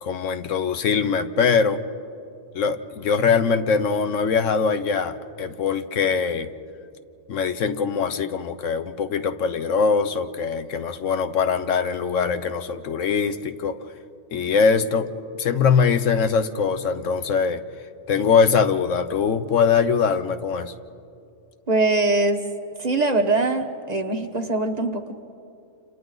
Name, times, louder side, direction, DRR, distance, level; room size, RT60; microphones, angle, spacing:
voice 1, 0.0-1.8 2.5-6.5 7.3-13.9 14.3-15.1 15.4-17.6 18.1-20.7, left 6 dB, 80° left, 10 dB, 1.3 m, -22 dB
voice 2, 21.7-22.4 22.8-25.2, right 2 dB, 35° right, 4 dB, 1.3 m, -22 dB
29.0 x 28.0 x 4.0 m, 2.5 s
omnidirectional pair, 1.3 m